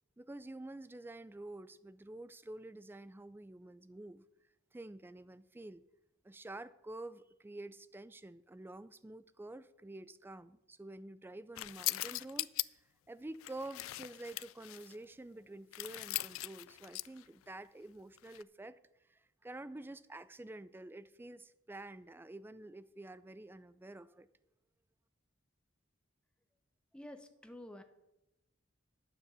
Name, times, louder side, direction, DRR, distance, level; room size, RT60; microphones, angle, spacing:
voice 1, 0.2-4.2 4.7-5.8 6.2-12.5 13.1-18.8 19.1-24.3, right 2 dB, 10° right, 16 dB, 0.3 m, -49 dB
sound 1, 11.6-12.7 13.3-14.9 15.7-17.2 18.2-18.4, left 19 dB, 85° left, 0.3 m, -40 dB
voice 2, 26.9-27.8, left 1 dB, 5° left, 8 dB, 0.8 m, -49 dB
9.5 x 7.3 x 6.8 m, 0.93 s
head